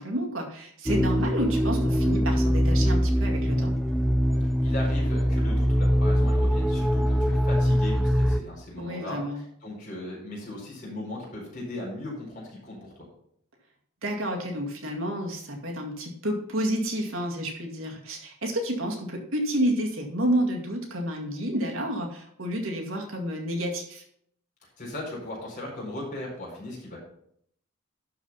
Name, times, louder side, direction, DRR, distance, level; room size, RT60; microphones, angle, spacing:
voice 1, 0.0-3.8 8.8-9.4 14.0-24.0, equal, 75° right, 1 dB, 2.1 m, -30 dB
sound 1, 0.9-8.4, equal, ahead, 0.5 m, -23 dB
voice 2, 4.6-9.2 9.6-12.9 24.8-27.0, left 1 dB, 40° left, -3 dB, 4.5 m, -37 dB
12.0 x 4.9 x 5.5 m, 0.68 s
head